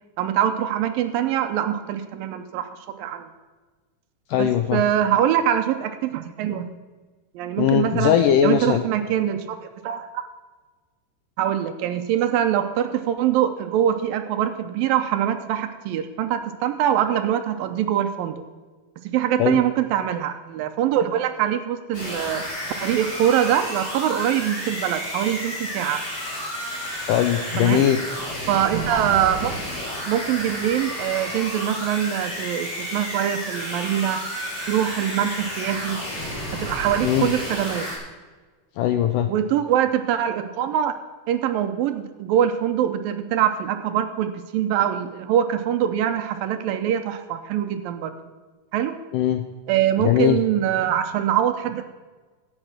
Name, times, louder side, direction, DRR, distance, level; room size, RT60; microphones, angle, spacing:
voice 1, 0.2-2.7 3.0-3.3 4.3-6.7 7.3-8.2 8.4-10.2 11.4-18.4 19.0-22.4 22.8-26.0 27.6-27.9 28.5-29.5 30.1-34.2 34.7-36.0 36.5-37.9 39.3-40.9 41.3-48.1 48.7-49.0 49.7-51.8, right 10 dB, 80° right, 8 dB, 2.3 m, -23 dB
voice 2, 4.3-4.8 7.6-8.8 19.4-19.6 27.1-28.0 37.0-37.3 38.8-39.3 49.1-49.4 50.0-50.4, left 10 dB, 80° left, 8 dB, 1.9 m, -20 dB
sound 1, 21.9-38.0, equal, 45° left, 6.3 m, -31 dB
15.5 x 9.0 x 6.1 m, 1.3 s
omnidirectional pair, 4.4 m